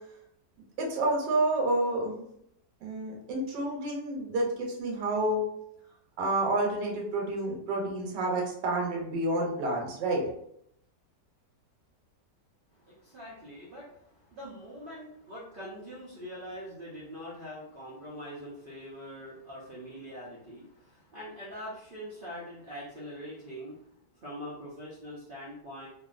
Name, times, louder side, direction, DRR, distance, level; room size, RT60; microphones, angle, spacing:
voice 1, 0.8-2.2 2.8-5.4 6.2-10.2, right 2 dB, 85° right, -1 dB, 1.3 m, -29 dB
voice 2, 12.8-23.9 24.2-25.9, equal, 70° right, -6 dB, 0.5 m, -43 dB
2.8 x 2.7 x 2.4 m, 0.72 s
omnidirectional pair, 1.8 m